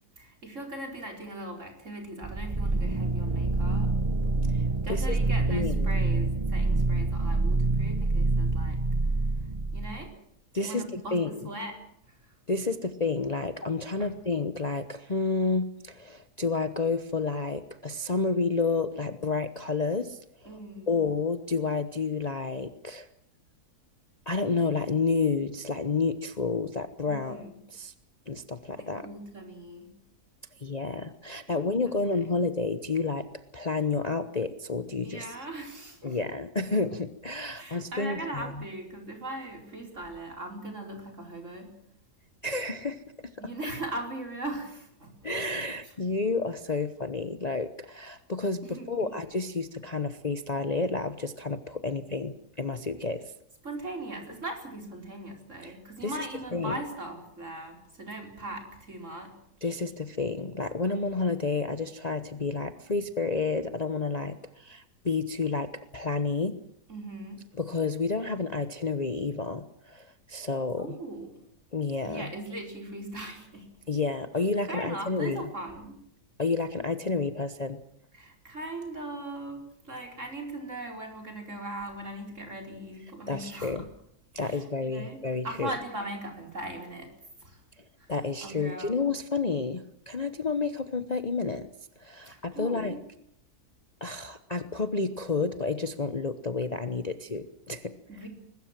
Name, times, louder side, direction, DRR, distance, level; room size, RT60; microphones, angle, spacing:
voice 1, 0.2-4.0 4.8-8.8 9.7-10.1 10.6-11.8 12.1-12.3 14.0-14.1 20.4-20.9 27.1-27.6 28.8-29.9 31.5-31.6 32.2-32.3 35.0-36.2 37.6-41.8 43.4-45.2 48.6-49.2 53.6-59.4 59.6-59.7 66.9-67.5 70.8-71.4 72.0-73.7 74.7-76.0 78.1-83.9 84.3-85.2 85.4-87.1 87.4-87.6 88.0-88.1 88.4-89.0 92.3-93.0 98.1-98.3, right 1 dB, 50° right, 3 dB, 5.0 m, -39 dB
sound 1, 2.2-10.1, right 3 dB, 25° right, 0.7 m, -26 dB
voice 2, 4.5-5.2 5.5-5.9 10.5-11.5 12.5-20.5 20.9-23.1 24.3-27.4 27.7-27.9 28.3-29.1 30.6-33.3 33.5-35.4 36.0-38.5 42.4-43.0 43.4-43.5 45.2-53.3 55.6-55.8 56.0-56.2 56.5-56.8 59.6-66.6 67.6-71.0 71.7-72.3 73.9-75.5 76.4-77.8 83.3-83.8 84.3-85.7 88.1-91.7 92.0-93.0 94.0-97.9, left 4 dB, 30° left, 9 dB, 1.0 m, -30 dB
22.0 x 20.5 x 7.5 m, 0.72 s
omnidirectional pair, 1.7 m